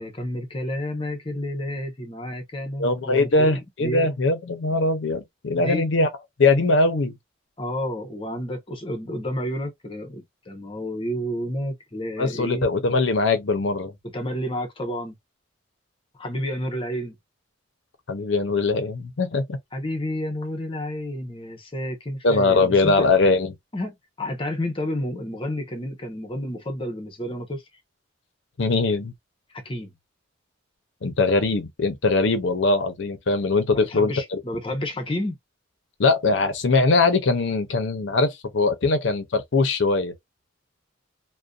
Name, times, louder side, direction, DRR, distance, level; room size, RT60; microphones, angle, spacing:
voice 1, 0.0-4.1 5.5-5.9 7.6-12.7 14.0-15.2 16.2-17.2 19.7-23.1 23.7-27.6 29.6-29.9 33.7-35.4, left 1 dB, 25° left, 0.7 m, -30 dB
voice 2, 2.8-6.1 6.4-7.1 12.2-13.9 18.1-19.6 22.2-23.5 28.6-29.1 31.0-34.4 36.0-40.1, left 3 dB, 65° left, 0.6 m, -21 dB
2.6 x 2.1 x 2.3 m
head